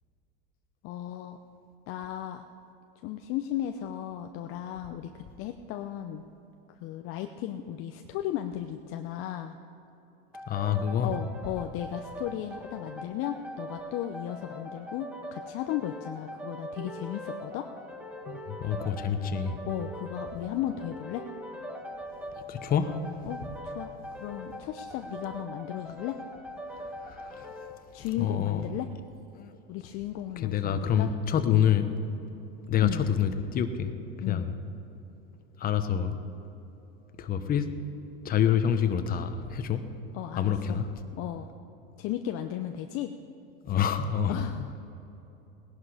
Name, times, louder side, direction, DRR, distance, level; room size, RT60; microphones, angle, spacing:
voice 1, 0.8-1.4 1.9-2.5 3.0-6.2 6.8-9.6 11.0-17.7 19.7-21.2 23.2-23.9 24.2-26.2 27.9-28.9 29.7-31.1 32.8-33.1 34.2-34.5 40.1-40.8 41.2-41.5 42.0-43.1 44.3-44.7, left 11 dB, 45° left, 6 dB, 0.7 m, -35 dB
sound 1, 10.3-27.8, equal, 5° right, 1.6 m, -41 dB
voice 2, 10.5-11.1 18.3-19.6 22.5-23.0 26.8-27.5 28.2-28.6 29.3-29.6 30.4-31.9 32.7-33.9 34.2-34.5 35.6-36.2 37.2-37.7 38.2-39.8 40.4-40.9 43.6-44.4, left 8 dB, 30° left, 8 dB, 1.1 m, -27 dB
18.5 x 11.0 x 5.0 m, 3.0 s
supercardioid pair, 120°, 30 cm